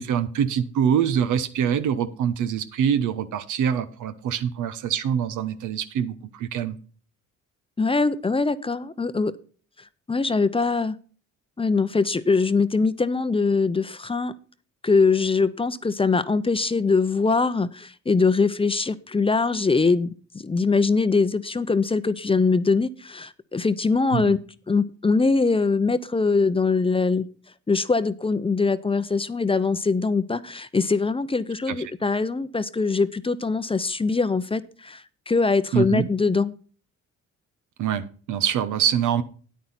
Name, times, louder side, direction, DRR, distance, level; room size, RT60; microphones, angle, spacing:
voice 1, 0.0-6.8 24.1-24.4 31.7-31.8 35.7-36.1 37.8-39.2, right 8 dB, 80° right, 12 dB, 1.0 m, -24 dB
voice 2, 7.8-9.3 10.1-10.9 11.6-14.3 14.8-20.1 20.3-24.4 24.7-27.3 27.7-36.6, left 4 dB, 20° left, 14 dB, 0.6 m, -22 dB
9.2 x 9.1 x 4.2 m, 0.40 s
cardioid pair, 90°, 30 cm